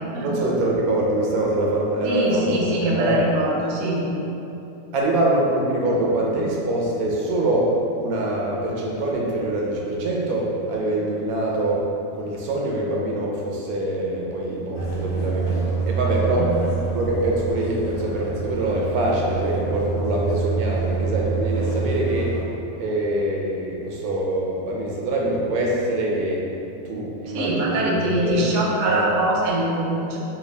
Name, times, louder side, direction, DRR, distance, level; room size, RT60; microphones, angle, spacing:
voice 1, 0.2-3.3 4.9-11.9 12.1-16.5 16.9-22.4 22.7-26.4 26.8-28.5 28.8-29.0, right 1 dB, 90° right, -3 dB, 1.1 m, -24 dB
voice 2, 2.0-4.0 16.3-16.7 27.3-30.2, right 1 dB, 65° right, -3 dB, 0.8 m, -23 dB
sound 1, 14.7-22.4, right 5 dB, 30° left, 1.1 m, -26 dB
3.5 x 2.3 x 3.2 m, 2.9 s
omnidirectional pair, 1.5 m